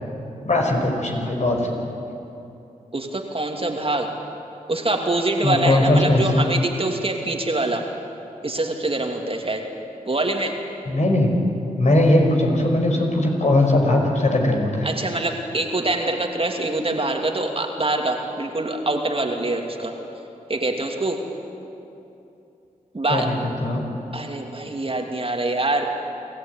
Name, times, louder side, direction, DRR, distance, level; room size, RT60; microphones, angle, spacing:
voice 1, 0.4-1.7 5.4-6.5 10.9-11.4 11.8-14.9 23.1-23.8, left 1 dB, 50° left, 1 dB, 5.2 m, -19 dB
voice 2, 2.9-4.1 4.7-7.9 8.4-9.6 10.0-10.5 14.8-19.9 20.5-21.2 22.9-23.3 24.1-25.9, right 2 dB, 40° right, 2 dB, 2.8 m, -24 dB
26.5 x 14.0 x 9.4 m, 2.9 s
cardioid pair, 40°, 15 cm